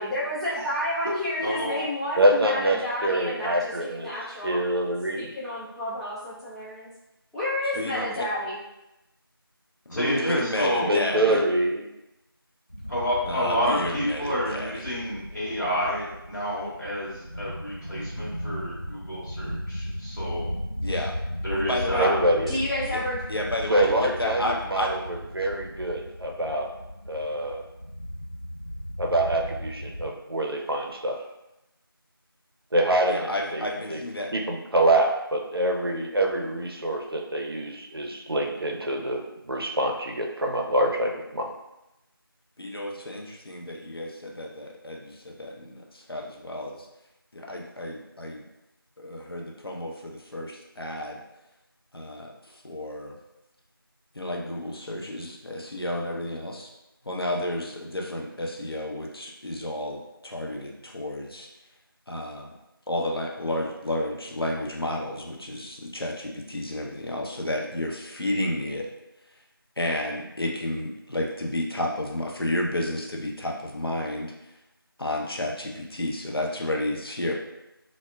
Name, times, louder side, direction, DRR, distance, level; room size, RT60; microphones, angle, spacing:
voice 1, 0.0-4.6 5.2-6.9 7.3-8.6 22.5-23.2, left 1 dB, ahead, -13 dB, 0.3 m, -30 dB
voice 2, 1.4-1.9 9.9-10.9 12.9-20.5 21.4-22.2, equal, 50° left, -8 dB, 1.0 m, -29 dB
voice 3, 2.2-2.8 3.0-4.1 4.4-5.3 10.8-11.9 22.0-22.6 23.7-26.7 27.1-27.6 29.0-31.2 32.7-34.0 34.3-41.5, right 1 dB, 75° right, 1 dB, 0.5 m, -25 dB
voice 4, 7.7-8.3 9.9-11.4 13.3-15.0 20.8-21.1 21.5-22.1 22.9-23.0 23.3-24.9 33.1-34.3 42.6-46.8 47.3-48.4 49.0-51.2 51.9-52.3 52.6-53.2 54.1-56.7 57.1-61.5 62.1-62.5 62.9-68.9 69.8-74.3 75.0-77.3, left 1 dB, 75° left, 0 dB, 0.6 m, -31 dB
sound 1, 12.7-30.1, equal, 35° right, 0.7 m, -36 dB
3.4 x 2.1 x 2.2 m, 0.93 s
figure-of-eight pair, 180°, 13 cm